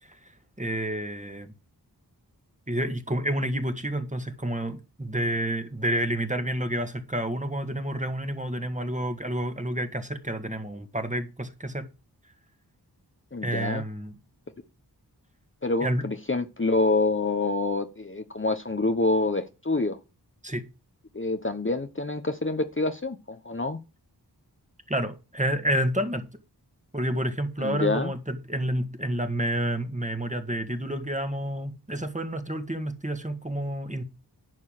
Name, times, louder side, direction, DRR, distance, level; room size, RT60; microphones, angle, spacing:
voice 1, 0.6-1.5 2.7-11.9 13.4-14.1 15.8-16.0 20.4-20.6 24.9-26.3 26.9-34.0, right 1 dB, 20° right, 1.8 m, -29 dB
voice 2, 13.3-13.8 15.6-20.0 21.1-23.8 27.6-28.1, left 3 dB, 30° left, 1.0 m, -27 dB
11.0 x 4.6 x 7.6 m
wide cardioid pair, 40°, 40 cm